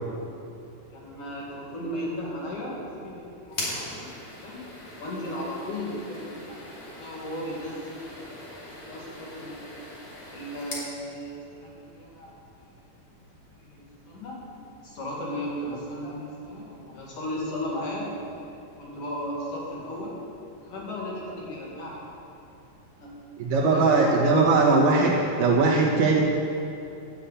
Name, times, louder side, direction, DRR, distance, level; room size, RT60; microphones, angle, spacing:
voice 1, 0.9-4.7 5.0-6.6 7.0-9.7 10.3-12.4 13.6-14.5 14.8-18.2 18.8-20.2 20.6-22.0 23.0-23.2 23.6-25.9, equal, 55° left, -5 dB, 3.4 m, -36 dB
sound 1, 3.5-10.9, left 1 dB, 35° left, 2.7 m, -40 dB
voice 2, 23.4-25.1 25.4-26.2, right 3 dB, 65° right, -3 dB, 3.4 m, -20 dB
13.0 x 7.5 x 8.4 m, 2.8 s
omnidirectional pair, 5.0 m